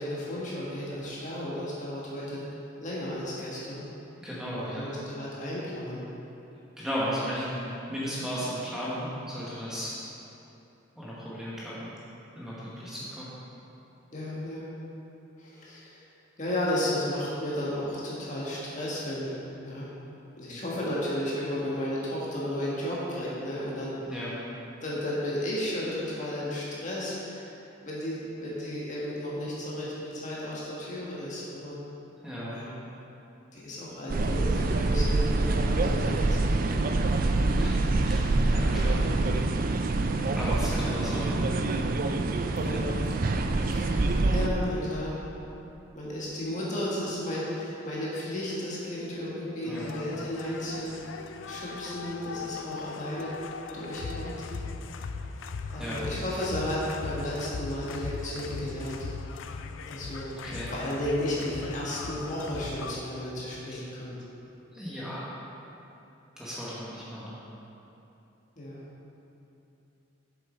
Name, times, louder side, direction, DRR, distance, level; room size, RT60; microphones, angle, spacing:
voice 1, 0.0-2.4 2.8-3.8 4.6-6.0 14.1-14.7 15.4-16.0 16.4-19.9 20.4-23.9 24.8-27.5 27.8-31.8 32.5-32.8 33.5-36.6 42.6-42.9 43.6-44.0 44.3-45.2 45.9-51.0 51.4-53.3 53.7-54.4 55.7-59.1 59.9-60.3 60.7-64.1 68.6-68.8, left 1 dB, 40° left, -7 dB, 1.8 m, -33 dB
voice 2, 4.2-4.9 6.8-10.0 11.0-11.9 12.3-13.3 24.1-24.4 32.2-32.5 37.6-37.8 38.0-39.0 40.3-41.4 49.6-49.9 55.8-56.0 60.4-60.7 63.7-63.8 64.7-65.3 66.4-67.3, equal, 5° right, -9 dB, 1.3 m, -35 dB
sound 1, 34.1-44.5, right 2 dB, 45° right, 0.4 m, -26 dB
sound 2, 49.7-63.0, left 4 dB, 75° left, 0.4 m, -39 dB
7.5 x 7.2 x 4.5 m, 3.0 s
head